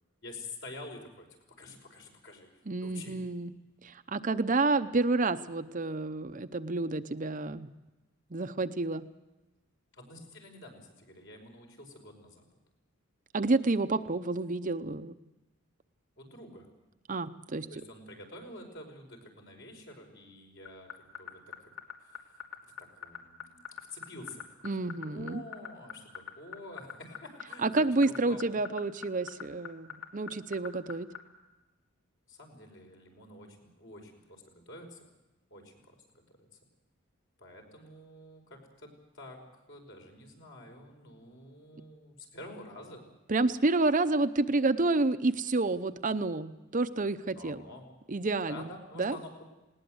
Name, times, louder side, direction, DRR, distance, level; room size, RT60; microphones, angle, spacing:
voice 1, 0.2-1.3 1.6-2.5 2.8-3.2 9.9-12.4 16.2-16.7 17.7-21.4 22.0-22.4 22.8-24.4 24.9-27.7 28.1-28.6 32.3-35.1 35.5-35.9 37.4-38.9 39.1-43.0 47.3-47.8 48.5-49.4, left 2 dB, 60° left, 2 dB, 5.3 m, -48 dB
voice 2, 2.7-3.5 3.8-7.7 8.3-9.0 13.3-15.1 17.1-17.7 24.6-25.4 27.6-31.1 43.3-47.6 48.1-48.6 49.0-49.2, right 3 dB, 40° right, 10 dB, 0.7 m, -29 dB
sound 1, 20.7-31.2, left 8 dB, 80° left, 2.8 m, -40 dB
20.0 x 19.0 x 7.9 m, 1.1 s
head